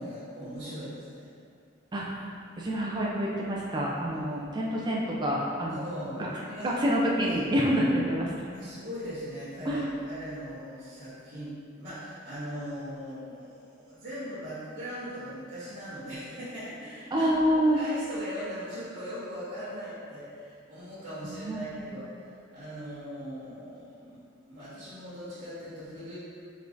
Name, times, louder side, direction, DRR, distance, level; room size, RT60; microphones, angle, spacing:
voice 1, 0.0-1.3 4.3-4.7 5.7-6.7 8.5-24.2 24.5-26.2, equal, 50° right, -16 dB, 1.4 m, -40 dB
voice 2, 1.9-2.2 2.6-5.8 6.2-8.3 9.7-9.8 17.1-17.8 21.2-21.9, equal, 25° right, -4 dB, 0.5 m, -27 dB
5.4 x 3.8 x 2.5 m, 2.3 s
head